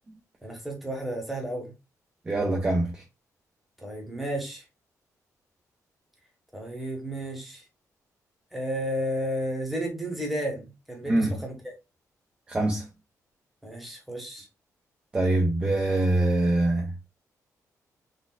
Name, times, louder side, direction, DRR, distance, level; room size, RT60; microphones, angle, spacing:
voice 1, 0.4-1.7 3.8-4.6 6.5-7.6 8.5-11.7 13.6-14.5, equal, ahead, 1.0 m, -32 dB
voice 2, 2.3-3.0 11.1-11.3 12.5-12.9 15.1-16.9, right 2 dB, 15° right, 0.5 m, -24 dB
3.9 x 2.4 x 2.3 m
cardioid pair, 150°, 6 cm